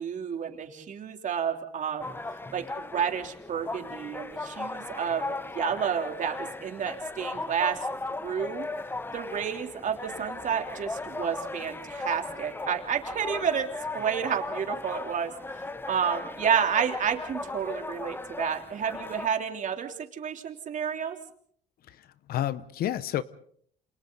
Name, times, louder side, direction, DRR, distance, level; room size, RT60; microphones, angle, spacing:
voice 1, 0.0-2.1 2.5-8.7 9.1-13.7 13.9-21.2, right 8 dB, 50° right, 3.3 m, -30 dB
sound 1, 2.0-19.3, left 2 dB, 15° left, 0.8 m, -37 dB
voice 2, 21.9-23.2, left 11 dB, 65° left, 0.9 m, -30 dB
28.5 x 28.0 x 4.0 m
cardioid pair, 110°, 17 cm